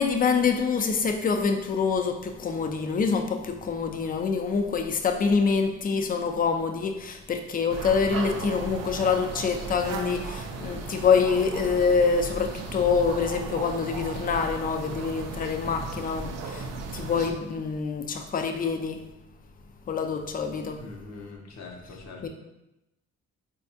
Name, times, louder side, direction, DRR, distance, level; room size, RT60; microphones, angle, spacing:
voice 1, 0.0-16.6 16.9-19.0 19.9-20.8 22.2-22.3, left 5 dB, 30° left, 5 dB, 0.4 m, -26 dB
sound 1, 7.7-17.3, right 3 dB, 60° right, 0.5 m, -36 dB
voice 2, 20.8-22.3, left 3 dB, 60° left, 1 dB, 0.8 m, -43 dB
4.0 x 2.3 x 2.7 m, 0.93 s
cardioid pair, 90°, 30 cm